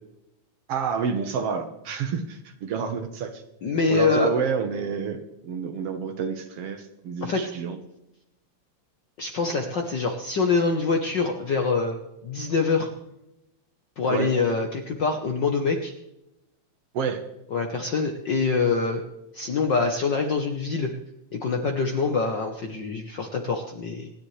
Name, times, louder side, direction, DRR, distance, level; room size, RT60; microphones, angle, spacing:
voice 1, 0.7-3.4 3.9-7.8 14.1-14.4 16.9-17.2, right 6 dB, 60° right, 7 dB, 1.9 m, -29 dB
voice 2, 3.6-4.3 7.2-7.5 9.2-12.0 12.2-12.9 14.0-15.9 17.5-19.0 19.3-20.9 21.3-24.1, left 4 dB, 55° left, 3 dB, 1.3 m, -25 dB
27.0 x 10.5 x 3.3 m, 0.90 s
omnidirectional pair, 3.3 m